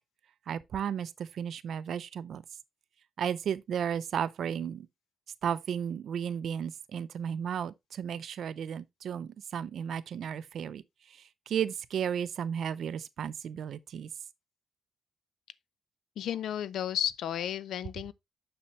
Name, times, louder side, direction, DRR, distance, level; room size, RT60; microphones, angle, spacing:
voice 1, 0.5-2.4 3.2-4.9 5.4-10.8 11.1-14.1, right 8 dB, 70° right, 0.5 m, -34 dB
voice 2, 16.2-18.1, left 10 dB, 80° left, 0.5 m, -33 dB
6.9 x 6.6 x 3.2 m
cardioid pair, 110°, 0 cm